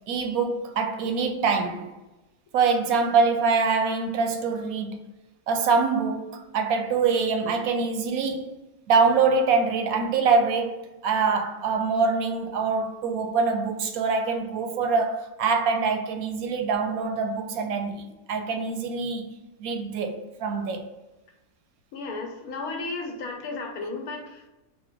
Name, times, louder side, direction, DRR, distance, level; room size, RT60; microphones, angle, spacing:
voice 1, 0.1-1.9 2.5-5.0 5.5-8.6 8.9-19.3 19.6-20.9, right 4 dB, 80° right, 1.0 m, -24 dB
voice 2, 21.9-24.5, left 3 dB, 85° left, 1.3 m, -34 dB
4.1 x 2.2 x 3.7 m
omnidirectional pair, 1.5 m